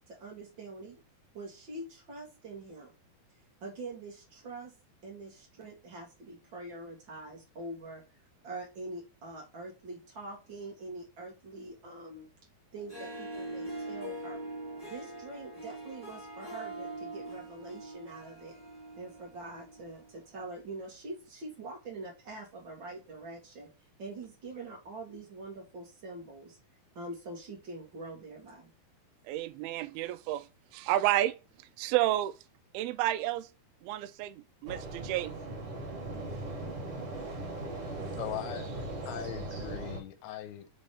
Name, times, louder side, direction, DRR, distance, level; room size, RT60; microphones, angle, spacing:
voice 1, 0.1-1.0 1.3-2.9 3.6-4.7 5.0-12.3 12.7-14.4 14.8-18.5 19.0-23.7 24.0-26.6 26.9-28.7 38.0-38.1, right 2 dB, 65° right, 1.1 m, -44 dB
Harp, 12.7-20.2, right 2 dB, 15° left, 0.9 m, -43 dB
voice 2, 29.3-30.5 30.7-31.4 31.8-32.3 32.7-33.5 33.8-35.4, right 14 dB, 80° right, 2.3 m, -30 dB
sound 1, 34.7-40.0, right 2 dB, 45° right, 1.9 m, -39 dB
voice 3, 38.1-38.7 39.1-40.7, left 11 dB, 80° left, 2.5 m, -40 dB
6.0 x 3.4 x 5.4 m
omnidirectional pair, 4.7 m